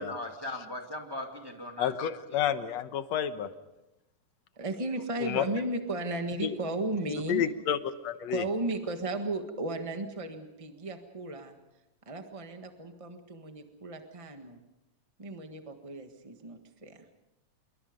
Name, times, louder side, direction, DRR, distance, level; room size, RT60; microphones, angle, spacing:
voice 1, 0.0-1.9 2.3-2.4, left 1 dB, 10° right, 2 dB, 1.8 m, -39 dB
voice 2, 1.8-3.5 5.2-5.4 6.4-6.6 7.3-8.5, left 9 dB, 65° left, 10 dB, 2.1 m, -30 dB
voice 3, 4.5-7.4 8.3-11.5 12.1-14.6 15.2-17.0, right 2 dB, 30° right, 5 dB, 0.5 m, -35 dB
27.0 x 23.0 x 5.2 m, 0.94 s
omnidirectional pair, 3.5 m